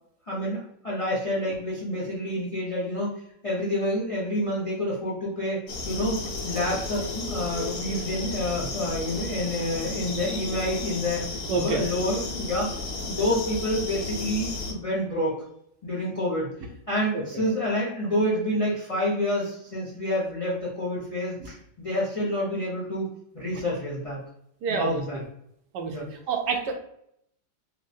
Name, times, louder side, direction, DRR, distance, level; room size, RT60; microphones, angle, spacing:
voice 1, 0.3-3.1 3.4-5.6 5.8-11.2 11.5-12.8 13.0-15.4 15.8-16.5 16.9-23.0 23.3-24.2 24.7-25.2 25.9-26.1, left 1 dB, 50° left, -5 dB, 0.4 m, -28 dB
sound 1, 5.7-14.7, left 2 dB, 85° left, 1.3 m, -33 dB
voice 2, 11.5-11.8 17.1-17.4 21.4-21.5 24.6-25.2 25.7-26.7, right 4 dB, 80° right, 3 dB, 1.2 m, -29 dB
4.4 x 2.0 x 2.6 m, 0.73 s
omnidirectional pair, 1.9 m